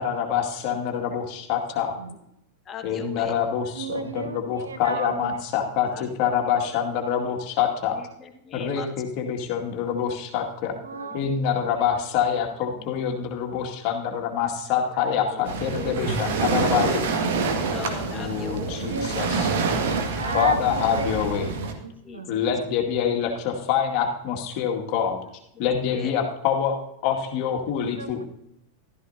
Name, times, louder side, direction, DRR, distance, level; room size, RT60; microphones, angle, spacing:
voice 1, 0.0-2.0 2.8-5.9 6.2-8.0 8.5-10.7 11.1-17.1 18.1-19.5 20.3-21.5 22.3-25.2 25.6-26.8 27.0-28.2, left 8 dB, 45° left, 2 dB, 2.2 m, -26 dB
voice 2, 1.0-1.4 2.6-3.4 5.0-5.1 5.9-6.7 7.9-8.9 10.7-11.5 12.4-13.2 14.8-16.1 16.8-16.9 17.7-18.9 20.2-21.0 22.0-22.2 22.7-22.8 25.5-26.1, left 8 dB, 25° left, 4 dB, 1.6 m, -41 dB
voice 3, 3.7-5.3 10.8-11.2 18.8-19.2 19.5-22.4 28.0-28.2, right 4 dB, 70° right, 9 dB, 1.0 m, -34 dB
Waves surf, 15.4-21.7, right 4 dB, 55° right, 1.8 m, -26 dB
15.0 x 13.0 x 2.8 m, 0.79 s
figure-of-eight pair, 90°, 0 cm